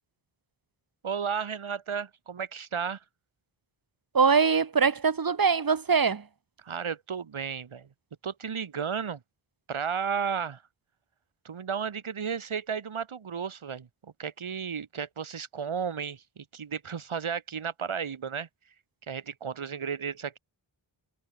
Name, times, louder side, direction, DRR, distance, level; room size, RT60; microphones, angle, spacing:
voice 1, 1.0-3.0 6.6-7.9 8.2-9.2 9.7-10.6 11.4-18.5 19.1-20.4, right 6 dB, 85° right, 4.2 m, -33 dB
voice 2, 4.1-6.2, right 5 dB, 45° right, 2.0 m, -23 dB
wide cardioid pair, 75°, 47 cm